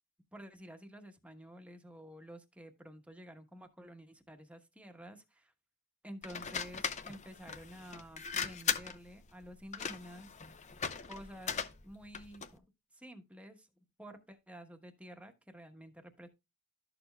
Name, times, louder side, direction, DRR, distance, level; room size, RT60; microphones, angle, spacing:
voice 1, 0.3-5.5 6.0-10.3 11.1-12.7 12.9-13.7 14.0-16.3, equal, 5° right, 1.1 m, -51 dB
sound 1, 6.2-12.6, left 6 dB, 30° left, 0.7 m, -39 dB
12.5 x 6.8 x 2.2 m
head